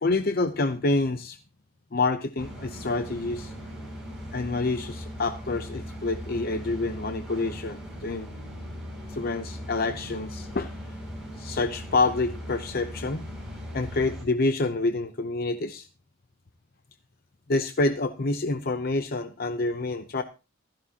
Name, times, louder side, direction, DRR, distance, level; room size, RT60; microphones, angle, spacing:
voice 1, 0.0-1.4 1.9-3.5 4.3-8.3 9.1-10.7 11.4-13.2 13.7-15.9 17.5-20.2, left 3 dB, 50° left, 8 dB, 0.7 m, -27 dB
sound 1, 2.4-14.2, equal, 5° right, 5.9 m, -39 dB
15.5 x 13.5 x 2.8 m, 0.31 s
head